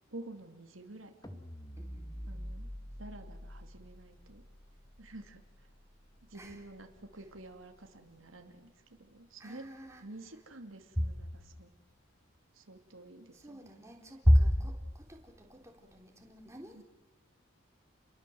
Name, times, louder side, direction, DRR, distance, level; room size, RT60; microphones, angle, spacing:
voice 1, 0.1-1.4 2.3-2.7 3.0-4.4 5.0-5.7 6.3-9.7 10.0-11.3 11.6-11.7 12.5-13.7 16.7-16.8, right 2 dB, 85° right, 5 dB, 2.7 m, -50 dB
sound 1, 1.2-7.5, equal, 20° left, 2.1 m, -47 dB
voice 2, 1.8-2.3 6.3-6.6 9.4-10.0 11.0-11.1 13.3-16.8, equal, 15° right, 2 dB, 3.6 m, -31 dB
29.5 x 22.5 x 7.9 m, 1.1 s
head